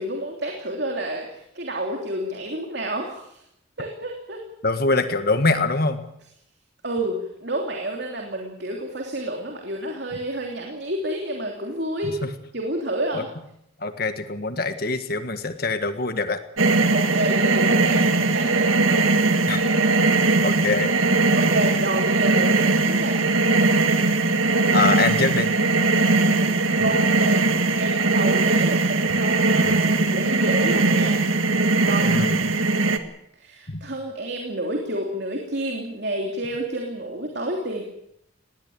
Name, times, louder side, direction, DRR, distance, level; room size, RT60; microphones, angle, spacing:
voice 1, 0.0-3.4 3.8-4.4 6.8-12.2 12.5-13.3 16.9-18.7 21.3-23.2 26.8-27.5 27.7-31.2 31.8-32.1 33.4-37.8, right 1 dB, 55° right, 1 dB, 3.1 m, -29 dB
voice 2, 4.6-6.0 13.1-13.2 13.8-16.4 19.5-19.7 20.4-20.9 24.7-25.5 32.0-32.4 33.7-33.8, left 3 dB, 50° left, 9 dB, 1.6 m, -24 dB
sound 1, 16.6-33.0, right 3 dB, 85° right, 2.0 m, -20 dB
20.0 x 17.5 x 8.8 m, 0.79 s
head